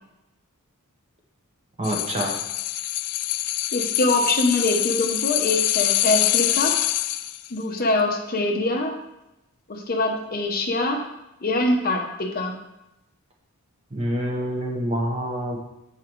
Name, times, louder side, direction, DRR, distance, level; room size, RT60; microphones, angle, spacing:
sound 1, 1.8-7.5 7.8-7.9, left 15 dB, 85° left, 0.3 m, -24 dB
voice 1, 1.8-2.4 13.9-15.6, equal, 30° right, 0 dB, 1.1 m, -26 dB
voice 2, 3.7-6.8 7.5-9.0 9.7-11.0 11.4-12.5, left 2 dB, 40° left, 2 dB, 0.8 m, -24 dB
6.9 x 4.8 x 4.6 m, 0.92 s
head